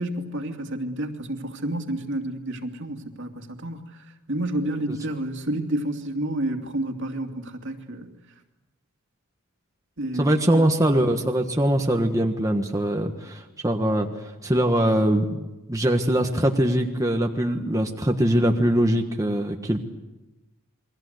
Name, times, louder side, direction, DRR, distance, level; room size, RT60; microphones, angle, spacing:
voice 1, 0.0-8.1 10.0-10.7, right 1 dB, 60° right, 4 dB, 2.6 m, -30 dB
voice 2, 10.1-14.1 14.4-19.8, right 1 dB, 15° right, 2 dB, 1.4 m, -22 dB
29.0 x 22.5 x 8.0 m, 1.0 s
head